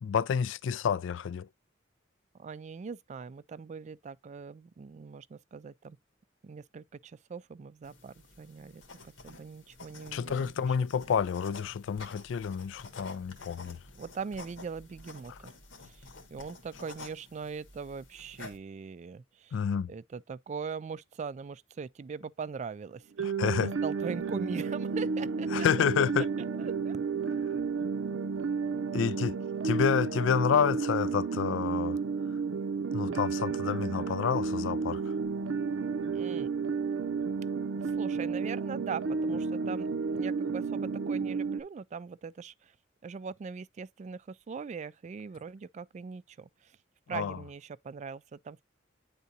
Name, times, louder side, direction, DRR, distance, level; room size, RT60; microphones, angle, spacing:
voice 1, 0.0-1.5 10.1-13.8 15.3-15.4 19.5-19.9 23.2-23.7 25.5-26.3 28.9-29.4 29.6-32.0 32.9-35.1 47.1-47.4, left 7 dB, 70° left, 0.3 m, -29 dB
voice 2, 2.4-6.0 6.4-10.7 14.0-15.5 15.8-19.6 19.9-25.5 26.6-27.0 36.1-36.5 37.8-42.7 43.0-46.7 47.1-48.6, right 5 dB, 40° right, 0.3 m, -41 dB
sound 1, 7.8-18.6, left 3 dB, 85° left, 1.5 m, -50 dB
sound 2, 23.2-41.6, right 5 dB, 85° right, 0.6 m, -32 dB
9.3 x 3.7 x 2.7 m
head